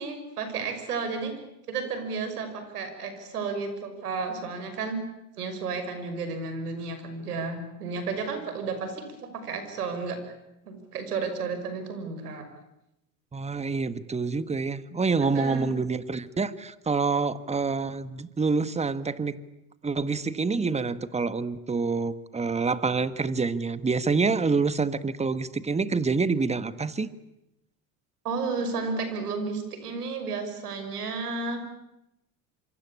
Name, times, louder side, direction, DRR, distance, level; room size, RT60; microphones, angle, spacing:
voice 1, 0.0-1.3 1.7-5.0 5.3-9.0 9.3-10.2 10.6-12.5 15.2-15.7 28.2-31.6, right 4 dB, 90° right, 8 dB, 6.0 m, -32 dB
voice 2, 13.3-19.4 19.8-27.1, right 4 dB, 15° right, 14 dB, 1.5 m, -27 dB
26.5 x 24.5 x 8.6 m, 0.86 s
hypercardioid pair, 95°, 44 cm